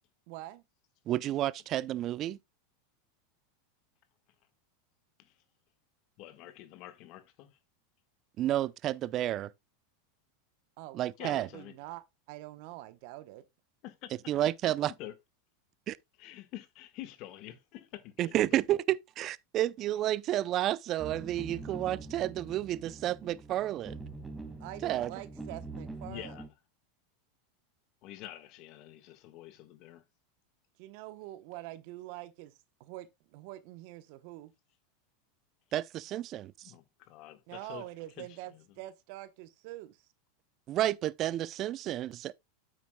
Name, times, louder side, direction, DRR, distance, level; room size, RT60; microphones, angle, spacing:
voice 1, 0.3-0.6 10.8-13.4 24.6-26.4 30.8-32.5 32.8-34.5 37.5-40.1, right 16 dB, 60° right, 0.9 m, -45 dB
voice 2, 1.1-2.4 8.4-9.5 10.9-11.5 14.3-14.9 15.9-16.0 18.2-23.9 24.8-25.1 35.7-36.5 40.7-42.3, right 13 dB, 40° right, 0.5 m, -31 dB
voice 3, 6.2-7.6 11.2-11.8 13.8-14.1 15.0-15.1 16.2-18.4 26.0-26.5 28.0-30.0 36.6-37.8 38.2-38.6, left 14 dB, 55° left, 1.5 m, -47 dB
sound 1, 21.0-26.5, right 3 dB, 5° right, 2.0 m, -44 dB
9.4 x 8.1 x 2.2 m
hypercardioid pair, 105°, 0 cm